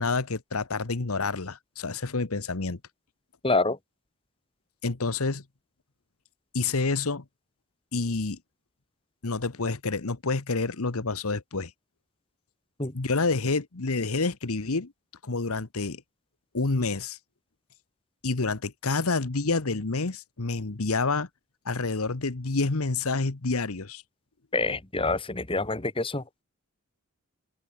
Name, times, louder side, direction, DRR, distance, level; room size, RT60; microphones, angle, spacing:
voice 1, 0.0-2.8 4.8-5.4 6.5-7.2 7.9-8.4 9.2-11.7 12.9-14.9 15.2-16.0 16.5-17.2 18.2-21.3 21.6-24.0, left 3 dB, 75° left, 1.2 m, -28 dB
voice 2, 3.4-3.8 12.8-12.9 24.5-26.4, left 3 dB, 25° left, 2.1 m, -27 dB
head